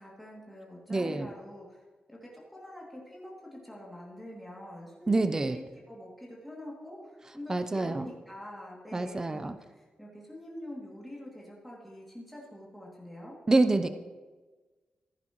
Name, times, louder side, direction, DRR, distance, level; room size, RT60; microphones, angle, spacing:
voice 1, 0.0-1.8 2.1-13.9, left 1 dB, ahead, -4 dB, 2.4 m, -45 dB
voice 2, 0.9-1.3 5.1-5.6 7.5-8.1 8.9-9.6 13.5-13.9, right 2 dB, 20° right, 10 dB, 0.6 m, -26 dB
14.5 x 10.5 x 3.0 m, 1.3 s
wide cardioid pair, 125°, 3 cm